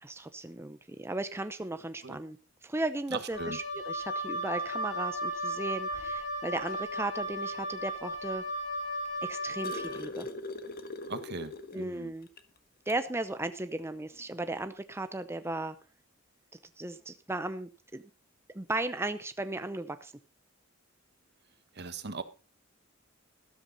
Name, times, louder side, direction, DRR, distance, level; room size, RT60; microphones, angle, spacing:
voice 1, 0.0-2.4 2.6-8.4 9.2-10.3 11.7-12.3 12.9-15.8 16.8-18.0 18.5-20.1, right 2 dB, 15° right, 0.7 m, -36 dB
voice 2, 3.1-3.6 11.1-12.1 21.7-22.2, right 4 dB, 55° right, 1.4 m, -39 dB
Wind instrument woodwind instrument, 3.3-10.0, equal, 80° left, 5.8 m, -35 dB
sound 1, 9.0-12.0 12.4-12.5 12.9-13.1 14.2-14.3, left 2 dB, 50° left, 1.5 m, -41 dB
13.0 x 13.0 x 4.0 m
head